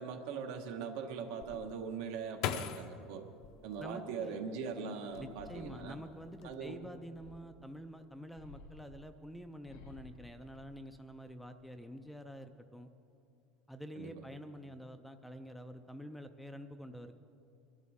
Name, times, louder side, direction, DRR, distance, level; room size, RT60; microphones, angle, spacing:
voice 1, 0.0-3.2 3.6-6.0 6.4-6.8 14.0-14.2, right 6 dB, 70° right, 5 dB, 1.3 m, -41 dB
sound 1, 1.4-4.5 5.0-5.8 6.1-6.5, left 10 dB, 55° left, 0.6 m, -41 dB
voice 2, 3.8-4.4 5.2-12.9 13.7-17.2, equal, ahead, 8 dB, 0.4 m, -48 dB
sound 2, 5.3-7.7 8.3-11.4 11.8-12.4, left 3 dB, 85° left, 1.8 m, -57 dB
21.5 x 12.5 x 3.6 m, 2.5 s
cardioid pair, 165°, 0 cm